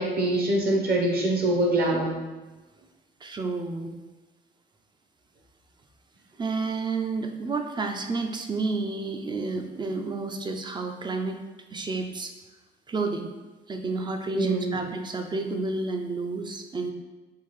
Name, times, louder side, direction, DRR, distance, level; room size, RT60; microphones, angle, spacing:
voice 1, 0.0-2.2 14.3-14.8, right 1 dB, 50° right, -2 dB, 0.9 m, -24 dB
voice 2, 3.2-4.0 6.4-11.4 11.7-12.3 12.9-13.3 13.7-16.9, right 3 dB, 25° right, 5 dB, 0.3 m, -30 dB
3.6 x 2.4 x 3.1 m, 1.2 s
cardioid pair, 90°, 20 cm